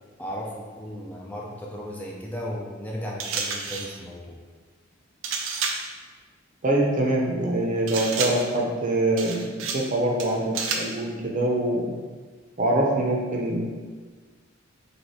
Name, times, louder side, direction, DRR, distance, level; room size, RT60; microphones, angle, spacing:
voice 1, 0.2-4.4, equal, 10° left, -3 dB, 0.4 m, -35 dB
sound 1, 3.2-4.0 5.2-5.9 7.9-8.6 9.2-9.9 10.2-11.0, right 5 dB, 80° right, 0.5 m, -30 dB
voice 2, 6.6-11.9 12.6-13.6, right 1 dB, 40° right, -1 dB, 0.7 m, -24 dB
3.3 x 2.8 x 4.1 m, 1.4 s
head